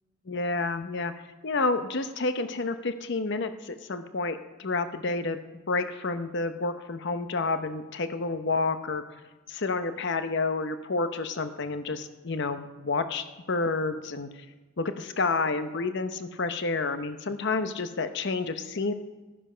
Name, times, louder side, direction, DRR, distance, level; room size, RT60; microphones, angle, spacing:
voice 1, 0.3-1.1 1.4-5.4 5.7-9.0 9.5-14.3 14.8-18.9, left 3 dB, 55° left, 9 dB, 0.7 m, -29 dB
14.0 x 12.5 x 5.6 m, 1.2 s
head